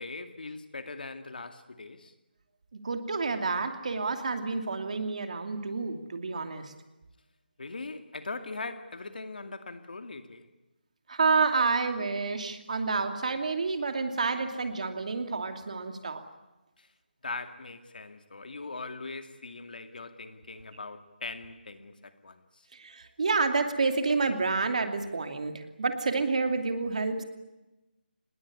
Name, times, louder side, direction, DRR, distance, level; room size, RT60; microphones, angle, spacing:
voice 1, 0.0-2.1 7.6-10.5 16.8-16.9 17.2-22.6, left 3 dB, 60° left, 2.3 m, -41 dB
voice 2, 2.8-6.7 11.1-16.2 22.8-27.2, right 4 dB, 45° right, 2.7 m, -29 dB
26.0 x 20.5 x 9.8 m
figure-of-eight pair, 175°, 6 cm